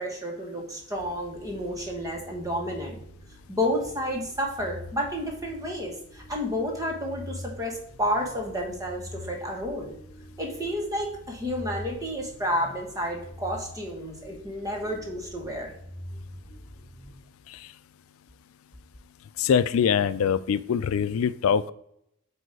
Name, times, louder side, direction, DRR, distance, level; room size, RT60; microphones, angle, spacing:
voice 1, 0.0-3.0 3.5-9.9 10.4-15.7, equal, 15° right, 0 dB, 1.4 m, -31 dB
sound 1, 1.0-17.8, equal, 25° left, 0.9 m, -45 dB
voice 2, 19.4-21.7, left 7 dB, 85° left, 15 dB, 0.4 m, -24 dB
7.8 x 2.7 x 4.8 m, 0.73 s
head